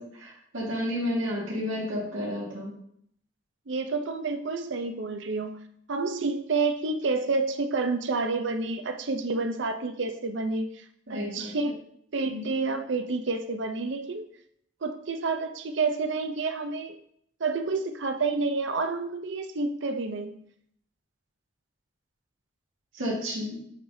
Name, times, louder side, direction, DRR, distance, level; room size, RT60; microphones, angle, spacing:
voice 1, 0.0-2.7 11.1-11.7 12.2-12.5 22.9-23.6, left 1 dB, 85° right, -4 dB, 2.0 m, -32 dB
voice 2, 3.7-5.6 5.9-10.8 11.1-11.8 12.1-14.3 14.8-17.0 17.4-20.4, right 3 dB, 65° right, 8 dB, 0.6 m, -29 dB
7.7 x 4.9 x 2.7 m, 0.68 s
head